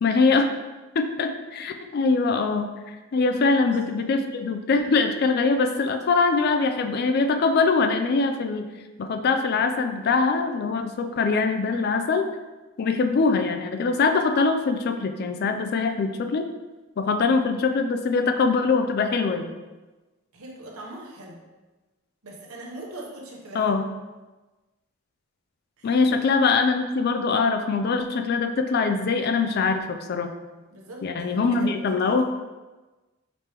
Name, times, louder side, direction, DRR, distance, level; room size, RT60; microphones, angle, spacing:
voice 1, 0.0-0.5 0.9-8.6 9.0-12.2 12.8-16.4 17.0-19.5 23.5-23.8 25.8-30.3 31.0-32.2, left 4 dB, 45° left, 7 dB, 0.3 m, -23 dB
voice 2, 3.5-3.9 20.3-21.4 22.2-23.8 25.8-26.0 30.7-32.2, right 1 dB, 80° right, -1 dB, 0.9 m, -41 dB
5.1 x 2.9 x 3.3 m, 1.2 s
head